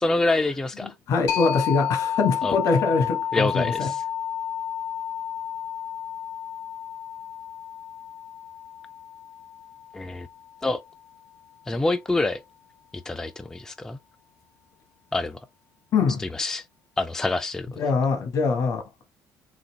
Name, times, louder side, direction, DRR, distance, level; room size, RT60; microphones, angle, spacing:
voice 1, 0.0-0.9 2.4-2.5 3.3-4.0 9.9-10.3 10.6-10.8 11.7-12.4 13.1-14.0 15.1-15.4 16.3-16.6 17.0-17.8, left 2 dB, 10° left, 0.3 m, -26 dB
voice 2, 0.8-3.9 15.9-16.2 17.8-18.8, left 4 dB, 60° left, 1.2 m, -23 dB
sound 1, 1.3-10.7, left 9 dB, 75° left, 1.6 m, -31 dB
4.0 x 2.5 x 4.0 m
cardioid pair, 125°, 7 cm